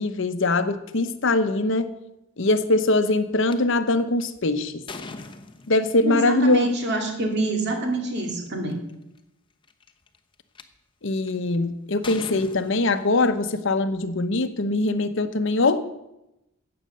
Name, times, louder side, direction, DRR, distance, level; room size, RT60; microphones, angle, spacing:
voice 1, 0.0-1.9 2.4-4.8 5.7-6.7 11.0-15.8, left 2 dB, 60° left, 10 dB, 0.9 m, -22 dB
sound 1, 3.5-3.6 4.2-6.1 7.3-7.5 8.2-8.3 8.5-8.9 9.6-10.6 11.3-11.6 12.0-13.5, left 3 dB, 25° left, 0.9 m, -40 dB
voice 2, 6.0-8.8, right 1 dB, 50° right, 3 dB, 2.4 m, -26 dB
14.0 x 8.8 x 6.7 m, 0.90 s
head